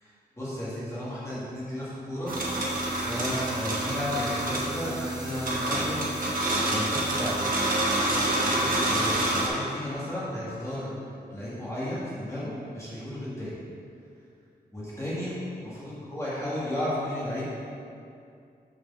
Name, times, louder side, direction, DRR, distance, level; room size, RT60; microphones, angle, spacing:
voice 1, 0.4-2.3 2.7-2.8 3.1-6.1 6.7-7.4 8.5-10.9 11.3-13.5 14.7-17.5, left 1 dB, 15° left, -9 dB, 1.5 m, -33 dB
sound 1, 2.3-9.5, right 1 dB, 60° right, 1.2 m, -27 dB
6.2 x 4.3 x 5.8 m, 2.5 s
wide cardioid pair, 170°, 17 cm